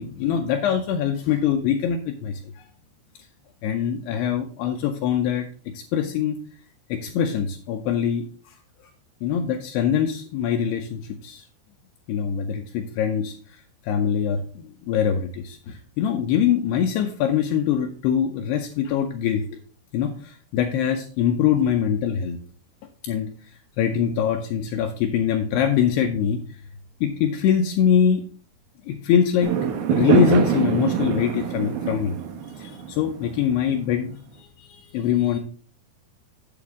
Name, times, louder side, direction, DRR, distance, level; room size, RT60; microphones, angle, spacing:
voice 1, 0.0-2.6 3.6-6.4 6.9-8.6 9.2-11.5 12.1-19.6 19.9-22.4 23.0-26.4 27.0-28.2 28.9-29.5 29.9-32.2 32.5-35.4, left 8 dB, 80° left, 4 dB, 2.5 m, -23 dB
Fireworks, 29.4-33.9, right 7 dB, 80° right, 1.8 m, -24 dB
8.5 x 7.9 x 3.6 m, 0.43 s
omnidirectional pair, 5.1 m